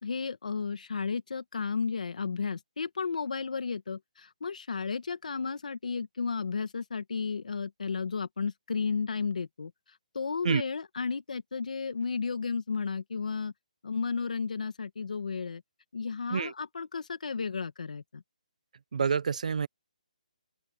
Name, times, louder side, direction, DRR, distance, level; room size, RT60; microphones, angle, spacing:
voice 1, 0.0-13.5 13.8-15.6 15.9-18.2, left 5 dB, 75° left, 1.8 m, -33 dB
voice 2, 18.9-19.7, right 6 dB, 65° right, 1.3 m, -27 dB
open air
hypercardioid pair, 160°, 4 cm